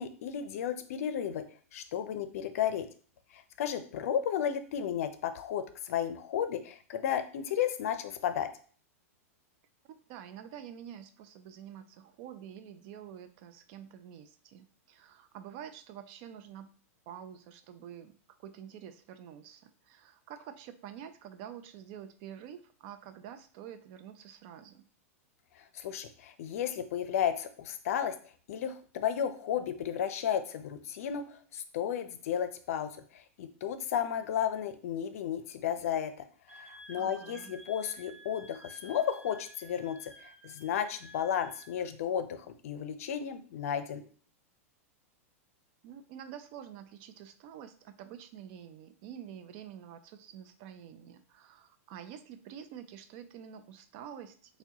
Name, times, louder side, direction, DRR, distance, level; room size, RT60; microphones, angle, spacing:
voice 1, 0.0-1.4 1.7-2.9 3.3-8.5 25.6-28.1 28.5-44.0, left 9 dB, 70° left, 10 dB, 0.5 m, -33 dB
voice 2, 9.8-16.7 17.1-24.9 37.0-37.6 45.8-54.6, right 9 dB, 50° right, 10 dB, 0.4 m, -48 dB
Wind instrument woodwind instrument, 36.5-41.8, equal, 20° right, 0.7 m, -52 dB
4.5 x 2.2 x 2.8 m, 0.44 s
hypercardioid pair, 120°, 8 cm